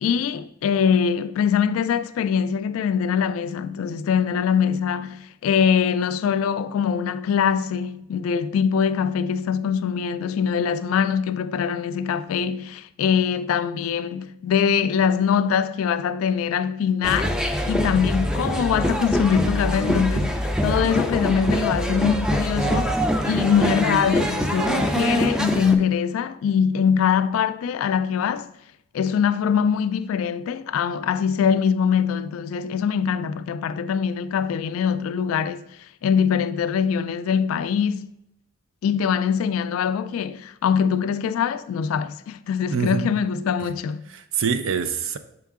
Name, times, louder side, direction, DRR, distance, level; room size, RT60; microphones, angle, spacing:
voice 1, 0.0-20.3 20.6-22.9 23.3-28.5 28.9-35.6 36.0-38.1 38.8-44.0, left 7 dB, 85° left, 0.3 m, -23 dB
sound 1, 17.0-25.8, equal, 5° right, 0.4 m, -24 dB
voice 2, 42.7-43.1 43.6-43.7 44.1-45.2, right 6 dB, 70° right, 0.5 m, -25 dB
6.3 x 4.6 x 3.5 m
head